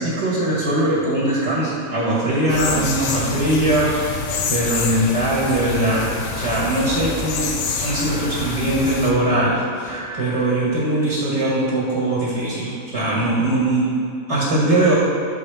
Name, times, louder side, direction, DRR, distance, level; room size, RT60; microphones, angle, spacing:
voice 1, 0.0-7.5 7.8-13.9 14.3-14.9, right 1 dB, 55° right, -6 dB, 1.4 m, -21 dB
sound 1, 2.5-9.1, left 5 dB, 70° left, 0.9 m, -27 dB
sound 2, 6.1-11.4, right 2 dB, 35° right, 1.0 m, -39 dB
6.6 x 3.5 x 4.5 m, 2.5 s
omnidirectional pair, 1.4 m